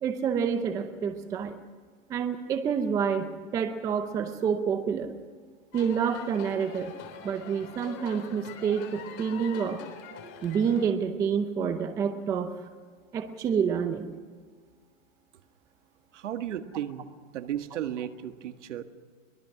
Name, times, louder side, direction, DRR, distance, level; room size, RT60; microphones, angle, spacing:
voice 1, 0.0-1.6 2.1-5.1 5.7-6.9 7.2-9.8 10.4-12.7 13.1-14.1, right 7 dB, 10° right, 8 dB, 0.5 m, -28 dB
sound 1, 5.7-10.8, left 6 dB, 30° left, 3.5 m, -44 dB
voice 2, 16.1-17.1 17.3-18.8, right 10 dB, 65° right, 8 dB, 1.9 m, -34 dB
24.0 x 21.0 x 6.0 m, 1.5 s
hypercardioid pair, 155°, 39 cm